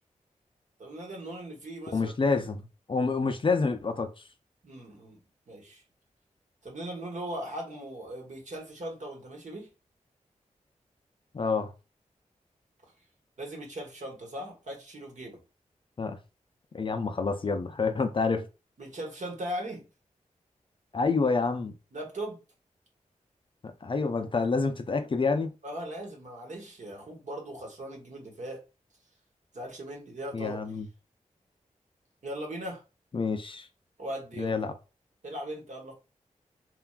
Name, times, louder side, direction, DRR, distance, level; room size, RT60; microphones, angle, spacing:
voice 1, 0.8-2.1 4.6-5.2 5.5-5.8 6.6-9.7 13.4-15.4 18.8-19.9 21.9-22.4 25.6-28.6 29.5-30.6 32.2-32.8 34.0-34.6 35.2-35.9, right 1 dB, 65° right, 1.1 m, -39 dB
voice 2, 1.9-4.1 11.3-11.7 16.0-16.2 16.7-18.5 20.9-21.8 23.6-25.5 30.3-30.9 33.1-33.7 34.4-34.7, left 4 dB, 40° left, 0.4 m, -28 dB
3.1 x 2.2 x 2.3 m
cardioid pair, 50°, 14 cm